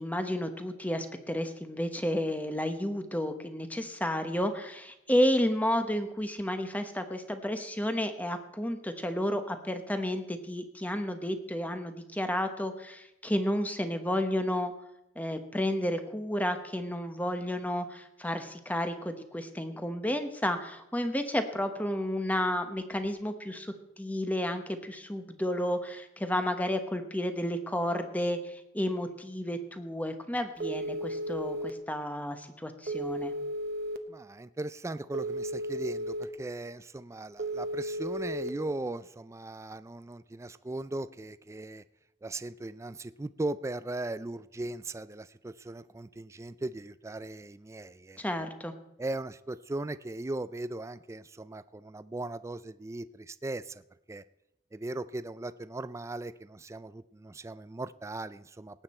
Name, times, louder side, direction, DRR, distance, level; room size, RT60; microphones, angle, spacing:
voice 1, 0.0-14.7 15.2-33.3 48.2-48.7, left 1 dB, 10° left, 8 dB, 1.1 m, -31 dB
Telephone, 30.6-31.7 32.9-34.0 35.1-36.2 37.4-38.5, right 1 dB, 55° right, 1.0 m, -34 dB
voice 2, 34.1-41.8 42.2-48.2 49.0-53.8 54.1-54.2 54.7-58.8, right 2 dB, 15° right, 14 dB, 0.4 m, -38 dB
18.5 x 9.0 x 4.3 m, 0.87 s
head